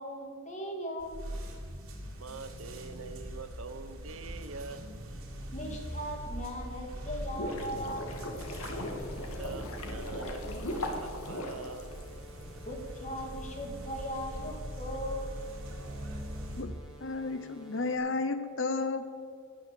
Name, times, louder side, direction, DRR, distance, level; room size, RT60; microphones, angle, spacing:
voice 1, 0.0-1.3 5.5-8.4 12.6-15.4, equal, 35° left, 2 dB, 2.7 m, -39 dB
sound 1, 1.0-16.6, right 1 dB, 90° right, 3.5 m, -42 dB
voice 2, 2.2-4.9 9.4-11.9, right 4 dB, 75° right, 11 dB, 1.0 m, -44 dB
sound 2, 7.0-12.4, left 1 dB, 85° left, 2.2 m, -38 dB
sound 3, 9.0-18.0, equal, 5° right, 2.6 m, -54 dB
voice 3, 17.0-19.1, left 3 dB, 60° left, 9 dB, 0.9 m, -32 dB
20.0 x 7.2 x 7.8 m, 2.1 s
head